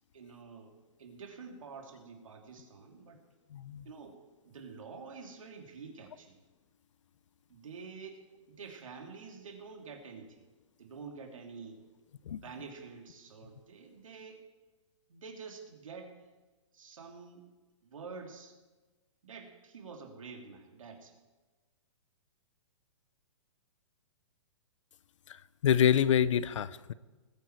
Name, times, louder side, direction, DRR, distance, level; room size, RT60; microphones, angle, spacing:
voice 1, 0.1-3.2 3.8-4.2 4.4-6.4 7.5-10.4 10.8-11.8 12.4-14.4 15.1-16.3 16.7-17.4 17.8-18.6 19.2-21.2, right 5 dB, 85° right, 3 dB, 2.9 m, -48 dB
voice 2, 3.5-3.8 12.3-12.4 25.6-26.9, left 9 dB, 70° left, 18 dB, 0.7 m, -26 dB
20.0 x 9.4 x 4.6 m, 1.3 s
hypercardioid pair, 150°, 16 cm